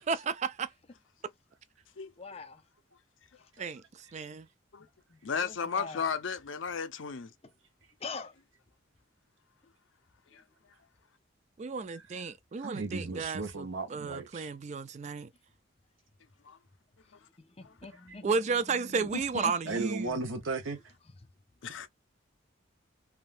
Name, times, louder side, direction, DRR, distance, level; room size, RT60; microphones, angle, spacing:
voice 1, 0.1-0.7 3.6-3.8 4.1-4.5 11.6-15.3 18.2-20.2, right 5 dB, 35° right, 0.3 m, -33 dB
voice 2, 2.2-2.6 5.1-6.1 8.0-8.3 17.6-18.3 18.7-19.5, left 3 dB, 30° left, 0.5 m, -42 dB
voice 3, 5.2-7.3 10.3-10.4 16.5-16.6 17.6-17.7 21.6-21.9, left 6 dB, 75° left, 0.6 m, -34 dB
voice 4, 12.6-14.5 18.1-18.2 19.0-19.1 19.7-20.8, right 3 dB, 80° right, 0.9 m, -35 dB
3.5 x 2.3 x 2.5 m
head